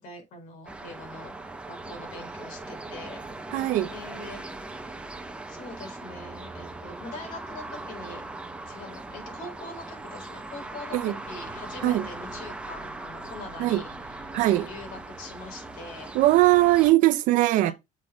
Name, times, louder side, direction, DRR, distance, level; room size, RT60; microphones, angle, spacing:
voice 1, 0.0-1.3 1.7-3.2 3.8-4.5 5.5-8.2 8.7-16.1 17.6-17.7, left 2 dB, 75° left, 4.2 m, -43 dB
sound 1, 0.7-16.9, right 2 dB, 10° right, 0.9 m, -40 dB
voice 2, 3.5-3.9 10.9-11.2 11.8-12.1 13.6-13.8 14.3-14.7 16.1-17.7, right 16 dB, 70° right, 0.7 m, -20 dB
7.3 x 4.1 x 5.0 m
cardioid pair, 160°, 14 cm